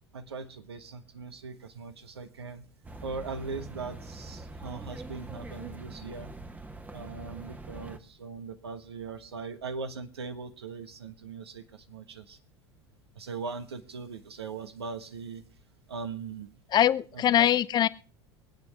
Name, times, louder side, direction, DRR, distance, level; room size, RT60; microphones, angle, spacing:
voice 1, 0.1-2.7 3.0-6.4 6.9-12.4 13.1-15.4 15.9-16.5 17.1-17.5, right 4 dB, 75° right, 8 dB, 1.3 m, -40 dB
sound 1, 2.8-8.0, right 2 dB, 10° right, 1.2 m, -43 dB
voice 2, 16.7-17.9, left 11 dB, 30° left, 17 dB, 0.6 m, -22 dB
24.5 x 9.2 x 3.5 m, 0.36 s
figure-of-eight pair, 75°, 14 cm